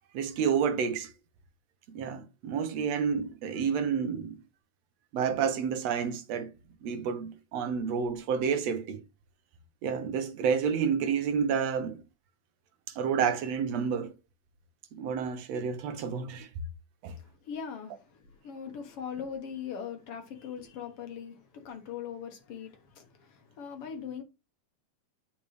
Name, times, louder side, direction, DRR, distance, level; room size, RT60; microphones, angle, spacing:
voice 1, 0.1-1.1 1.9-4.4 5.1-6.5 6.8-9.0 9.8-12.0 12.9-14.1 14.9-16.5 17.0-17.2, right 7 dB, 70° right, 2.0 m, -29 dB
voice 2, 17.1-24.2, left 7 dB, 60° left, 1.9 m, -41 dB
8.7 x 5.2 x 3.1 m
omnidirectional pair, 3.3 m